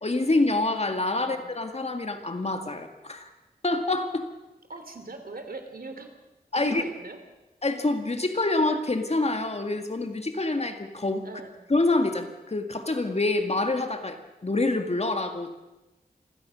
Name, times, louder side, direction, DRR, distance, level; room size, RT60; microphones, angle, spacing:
voice 1, 0.0-3.3 3.6-4.3 6.5-6.8 7.6-11.3 11.7-14.2 14.4-15.5, left 2 dB, 40° left, 6 dB, 2.0 m, -26 dB
voice 2, 4.7-6.2 6.5-7.2 11.2-11.5, right 3 dB, 65° right, 7 dB, 3.0 m, -40 dB
26.5 x 16.0 x 6.3 m, 1.0 s
wide cardioid pair, 85°, 16 cm